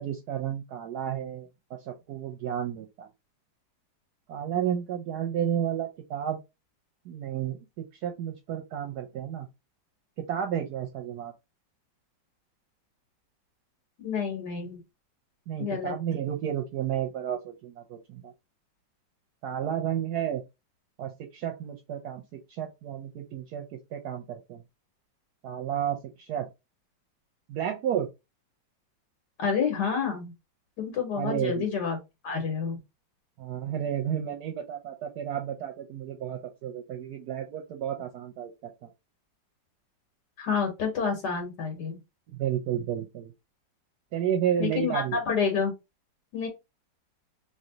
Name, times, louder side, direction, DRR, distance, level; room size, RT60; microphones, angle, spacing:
voice 1, 0.0-1.5 1.8-3.1 4.3-6.4 7.1-9.5 10.2-11.3 15.5-18.3 19.4-20.4 21.0-24.6 25.4-26.5 27.5-28.1 31.2-31.7 33.4-38.9 42.3-43.3 44.1-45.2, right 9 dB, 70° right, 1.0 m, -32 dB
voice 2, 14.0-14.8 15.6-15.9 29.4-30.3 30.8-32.0 32.2-32.8 40.4-42.0 44.6-45.7 46.3-46.5, left 6 dB, 70° left, 1.5 m, -29 dB
3.2 x 2.7 x 3.8 m
omnidirectional pair, 2.0 m